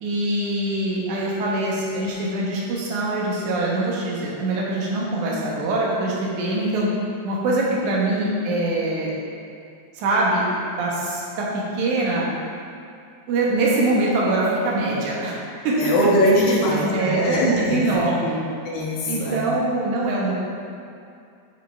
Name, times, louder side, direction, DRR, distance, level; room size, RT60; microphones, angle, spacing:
voice 1, 0.0-6.9 7.2-9.1 9.9-10.5 10.8-11.5 11.7-12.3 13.3-15.4 15.6-15.8 16.7-17.4 17.7-18.4 19.1-20.3, right 2 dB, 75° right, -5 dB, 1.8 m, -23 dB
voice 2, 15.8-18.0 18.7-19.5, equal, 65° left, -5 dB, 2.7 m, -21 dB
10.5 x 5.6 x 3.4 m, 2.4 s
omnidirectional pair, 5.3 m